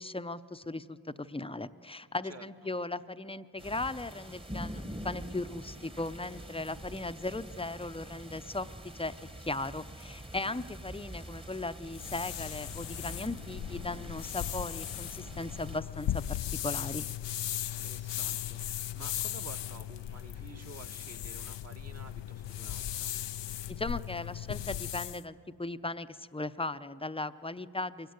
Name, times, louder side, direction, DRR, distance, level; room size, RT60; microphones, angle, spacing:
voice 1, 0.0-9.1 9.4-17.1 23.7-28.1, left 2 dB, 15° left, 12 dB, 0.7 m, -37 dB
voice 2, 2.2-2.7 10.3-10.6 17.6-23.2, right 3 dB, 35° right, 5 dB, 1.4 m, -51 dB
sound 1, 3.6-15.8, equal, 10° right, 1.3 m, -45 dB
sound 2, 11.9-25.2, left 11 dB, 85° left, 0.6 m, -37 dB
22.5 x 17.0 x 9.6 m, 2.2 s
cardioid pair, 40°, 42 cm